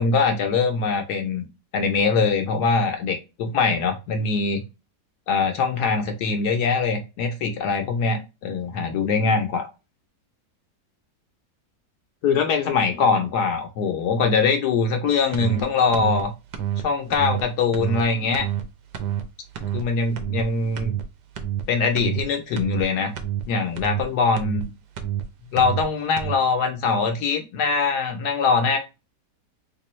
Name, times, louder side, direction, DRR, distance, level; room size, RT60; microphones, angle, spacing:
voice 1, 0.0-1.4 1.7-4.6 5.3-9.7 12.2-16.3 16.8-18.5 19.7-20.9 21.7-23.1 23.5-24.7 25.5-28.8, left 4 dB, 75° left, 1.1 m, -22 dB
sound 1, 15.3-15.6 15.9-16.2 16.5-16.8 17.1-17.4 17.7-18.0 18.3-18.6 18.9-19.2 19.6-19.8 20.2-20.4 20.7-21.0 21.4-21.6 22.0-22.2 22.6-22.8 23.2-23.4 23.8-24.0 24.4-24.6 25.0-25.2 25.6-25.8 26.2-26.4, right 11 dB, 75° right, 1.2 m, -27 dB
3.4 x 3.0 x 3.0 m
omnidirectional pair, 1.8 m